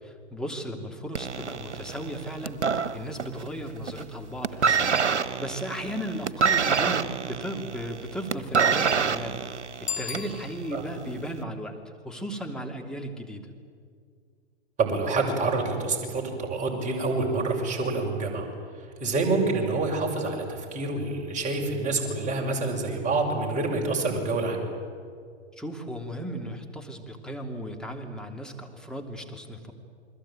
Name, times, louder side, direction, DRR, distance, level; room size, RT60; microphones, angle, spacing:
voice 1, 0.0-13.5 25.5-29.7, equal, ahead, 2 dB, 3.0 m, -36 dB
sound 1, 1.1-3.5 3.8-4.1 4.4-10.4 11.2-11.3, right 6 dB, 85° right, 1.3 m, -26 dB
Bicycle bell, 9.8-11.0, left 10 dB, 20° left, 3.5 m, -36 dB
voice 2, 14.8-18.5 19.0-24.6, right 3 dB, 20° right, 0 dB, 6.5 m, -27 dB
29.0 x 22.0 x 9.1 m, 2.1 s
hypercardioid pair, 115°, 34 cm